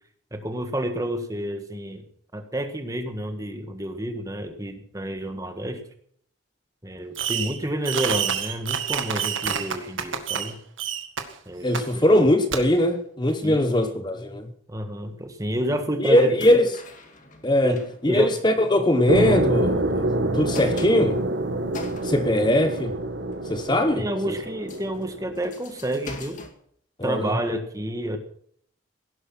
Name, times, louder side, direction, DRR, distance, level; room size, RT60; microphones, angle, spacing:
voice 1, 0.3-2.0 2.3-5.8 6.8-10.6 11.4-12.0 13.4-13.8 14.7-16.5 17.6-18.4 24.0-26.4 27.0-28.2, right 1 dB, 15° right, 1.7 m, -29 dB
Fireworks, 7.2-7.6 7.8-10.5 10.8-11.2 11.7-11.8 12.5-12.6, right 8 dB, 80° right, 2.0 m, -27 dB
voice 2, 11.6-14.5 16.0-16.7 17.4-17.8 18.0-20.0 20.3-21.2 22.0-22.9 23.5-24.3 27.0-27.3, left 1 dB, 20° left, 1.1 m, -21 dB
sound 1, 16.4-19.4 19.7-19.8 20.2-22.5 23.0-23.4 23.9-24.0 24.4-26.5, left 2 dB, 40° left, 2.3 m, -43 dB
sound 2, 19.1-25.4, right 1 dB, 65° right, 1.7 m, -26 dB
17.5 x 11.0 x 6.1 m
head